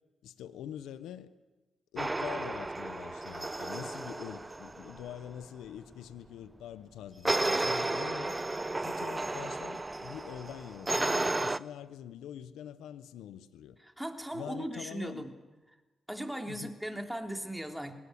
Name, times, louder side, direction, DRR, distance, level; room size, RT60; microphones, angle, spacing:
voice 1, 0.2-1.3 1.9-8.4 8.8-13.8 14.3-15.3 16.5-16.7, left 10 dB, 90° left, 0.9 m, -44 dB
sound 1, 2.0-5.1 7.3-11.6, right 2 dB, 25° right, 0.8 m, -33 dB
voice 2, 13.8-15.3 16.1-17.9, right 1 dB, 5° right, 3.3 m, -38 dB
21.0 x 18.5 x 9.8 m
supercardioid pair, 55°, 0 cm